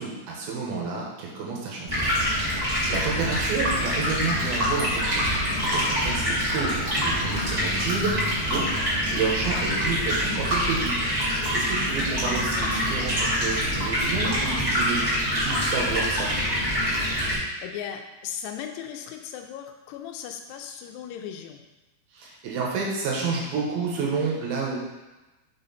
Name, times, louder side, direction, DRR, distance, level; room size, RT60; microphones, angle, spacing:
voice 1, 0.0-2.0 2.9-5.1 5.6-8.8 9.1-10.9 11.5-16.3 22.1-24.8, right 4 dB, 75° right, -2 dB, 2.6 m, -30 dB
Stream, 1.9-17.3, equal, 25° right, 0.7 m, -25 dB
voice 2, 2.9-3.3 12.2-12.7 17.3-21.6, left 9 dB, 90° left, 4 dB, 2.7 m, -38 dB
6.2 x 4.2 x 3.9 m, 1.1 s
omnidirectional pair, 4.7 m